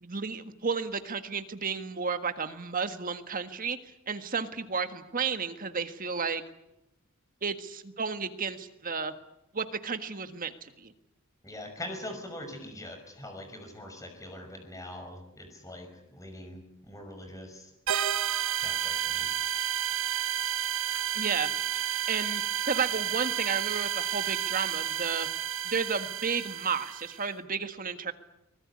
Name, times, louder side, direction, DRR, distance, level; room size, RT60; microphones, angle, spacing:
voice 1, 0.0-3.8 4.1-6.4 7.4-9.1 9.5-10.9 21.1-21.5 22.1-25.3 25.6-28.1, right 5 dB, 40° right, 9 dB, 1.6 m, -32 dB
voice 2, 11.4-17.7 18.6-19.3, left 1 dB, 15° left, 6 dB, 5.7 m, -43 dB
sound 1, 17.9-27.2, right 10 dB, 65° right, 1.4 m, -31 dB
24.5 x 20.5 x 9.7 m, 0.87 s
head